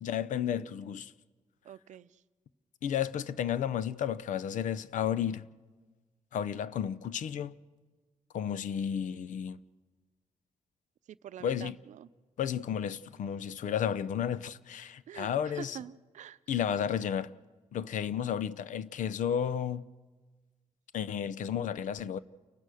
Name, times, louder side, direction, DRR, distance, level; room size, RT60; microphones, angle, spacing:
voice 1, 0.0-1.1 2.8-5.5 6.3-7.5 8.3-9.6 11.4-11.7 12.4-15.8 16.5-17.3 17.7-19.9 20.9-22.2, left 9 dB, 80° left, 0.6 m, -32 dB
voice 2, 1.6-2.2 11.1-12.1 15.1-16.6, right 10 dB, 70° right, 0.6 m, -46 dB
29.5 x 15.0 x 6.4 m
wide cardioid pair, 175°, 13 cm